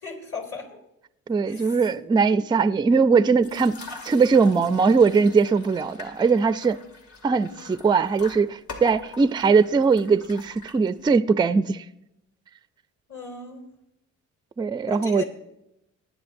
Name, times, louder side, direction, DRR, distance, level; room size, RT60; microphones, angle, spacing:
voice 1, 0.0-0.7 1.4-1.9 13.1-13.6 14.9-15.3, left 5 dB, 50° left, 3.2 m, -36 dB
voice 2, 1.3-6.8 7.2-11.9 14.6-15.2, right 5 dB, 15° right, 0.3 m, -20 dB
sound 1, 3.4-11.2, left 3 dB, 75° left, 2.4 m, -44 dB
20.0 x 9.7 x 2.6 m
cardioid pair, 90°, 30 cm